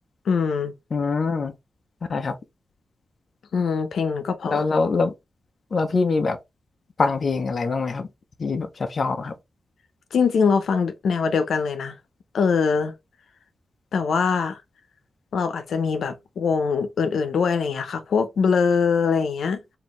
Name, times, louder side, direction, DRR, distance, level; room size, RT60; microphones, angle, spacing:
voice 1, 0.3-0.7 3.5-4.6 10.1-11.9 12.3-12.9 13.9-14.6 15.3-19.6, left 5 dB, 85° left, 0.7 m, -22 dB
voice 2, 0.9-1.5 2.1-2.4 4.4-5.1 5.7-6.4 7.0-8.1 8.4-9.3, left 4 dB, 40° left, 0.5 m, -23 dB
4.4 x 2.6 x 3.0 m
wide cardioid pair, 175°, 0 cm